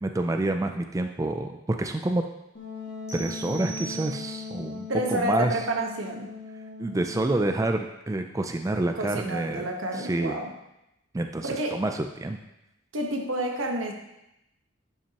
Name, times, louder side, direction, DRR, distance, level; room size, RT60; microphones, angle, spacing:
voice 1, 0.0-2.2 3.1-5.6 6.8-9.7 9.9-10.4 11.1-12.4, right 2 dB, 15° right, 6 dB, 0.3 m, -28 dB
Wind instrument woodwind instrument, 2.5-7.4, left 5 dB, 70° left, 1.4 m, -39 dB
sound 1, 3.1-4.6, right 6 dB, 15° left, 1.0 m, -41 dB
voice 2, 4.9-6.3 8.7-10.5 11.4-11.8 12.9-13.9, right 1 dB, 85° right, 3 dB, 1.2 m, -29 dB
11.5 x 5.8 x 2.9 m, 0.89 s
head